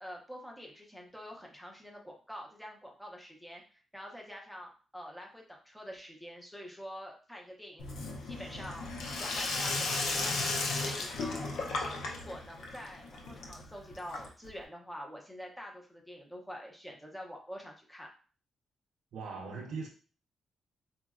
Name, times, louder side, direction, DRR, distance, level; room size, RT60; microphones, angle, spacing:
voice 1, 0.0-7.9 8.2-10.5 10.8-11.4 11.7-18.1, equal, ahead, 0 dB, 0.5 m, -46 dB
Sink (filling or washing), 7.8-14.6, left 3 dB, 90° left, 0.5 m, -35 dB
voice 2, 19.1-19.9, right 4 dB, 75° right, -1 dB, 0.4 m, -39 dB
3.7 x 2.0 x 2.3 m, 0.38 s
cardioid pair, 150°, 0 cm